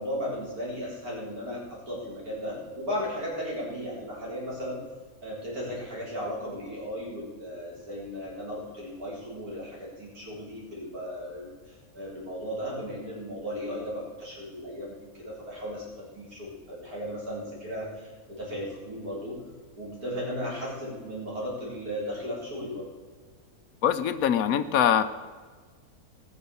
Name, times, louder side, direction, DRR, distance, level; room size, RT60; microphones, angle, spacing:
voice 1, 0.0-4.8 5.2-15.8 16.1-19.4 19.8-22.9, equal, 75° right, -5 dB, 4.6 m, -36 dB
voice 2, 23.8-25.0, left 9 dB, 70° left, 11 dB, 1.1 m, -23 dB
19.0 x 6.7 x 6.9 m, 1.5 s
omnidirectional pair, 1.6 m